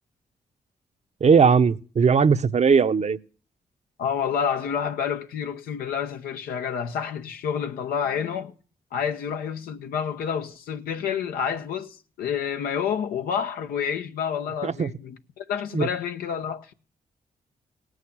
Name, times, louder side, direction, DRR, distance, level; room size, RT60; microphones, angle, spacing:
voice 1, 1.2-3.2 14.6-14.9 15.7-15.9, right 6 dB, 50° right, 0.7 m, -19 dB
voice 2, 4.0-8.5 8.9-16.7, left 7 dB, 90° left, 0.9 m, -29 dB
17.5 x 6.5 x 10.0 m
supercardioid pair, 55°, 15 cm